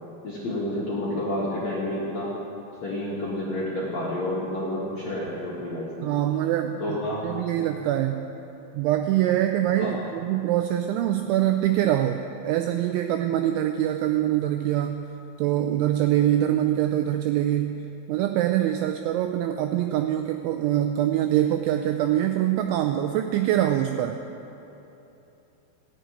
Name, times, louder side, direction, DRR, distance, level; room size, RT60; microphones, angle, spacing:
voice 1, 0.2-2.3 2.8-6.1 6.8-7.2 9.8-10.0, left 1 dB, 55° left, -7 dB, 2.0 m, -29 dB
voice 2, 6.0-7.0 7.2-8.3 8.7-15.1 15.4-24.2, right 12 dB, 85° right, 6 dB, 2.7 m, -24 dB
16.5 x 7.7 x 9.2 m, 3.0 s
omnidirectional pair, 6.0 m